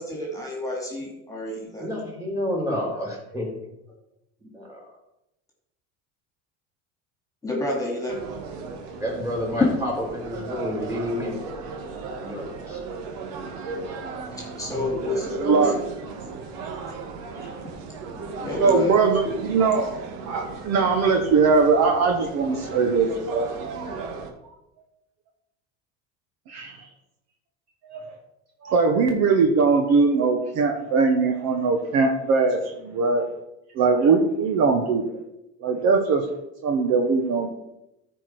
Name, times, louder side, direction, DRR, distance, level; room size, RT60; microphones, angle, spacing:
voice 1, 0.0-1.9 2.7-2.8 7.4-8.1 9.6-9.7 14.3-15.8 16.2-16.3 17.3-17.4 18.4-19.3 23.5-24.0, left 2 dB, 10° left, -2 dB, 2.5 m, -29 dB
voice 2, 1.8-3.5 4.4-4.8 9.0-11.7 12.1-12.8, left 1 dB, 10° right, -3 dB, 3.8 m, -30 dB
sound 1, 8.1-24.3, right 4 dB, 70° right, 1.6 m, -36 dB
voice 3, 15.4-15.7 18.6-19.9 20.3-23.5 26.5-26.8 27.8-28.0 28.6-33.2 33.7-35.2 35.6-36.3 36.6-37.5, right 4 dB, 50° right, 4 dB, 1.1 m, -21 dB
13.5 x 4.7 x 4.6 m, 0.88 s
cardioid pair, 150°, 34 cm